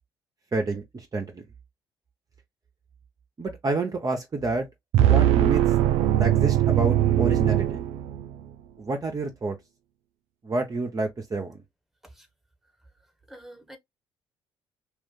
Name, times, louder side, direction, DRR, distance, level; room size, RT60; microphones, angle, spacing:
voice 1, 0.5-1.4 3.4-4.7 5.0-5.6 6.2-7.8 8.8-9.6 10.4-11.6, right 3 dB, 30° right, 0.8 m, -29 dB
sound 1, 4.9-8.4, right 12 dB, 70° right, 0.4 m, -21 dB
voice 2, 13.3-13.8, right 1 dB, ahead, 1.2 m, -46 dB
2.5 x 2.5 x 3.6 m
hypercardioid pair, 50°, 12 cm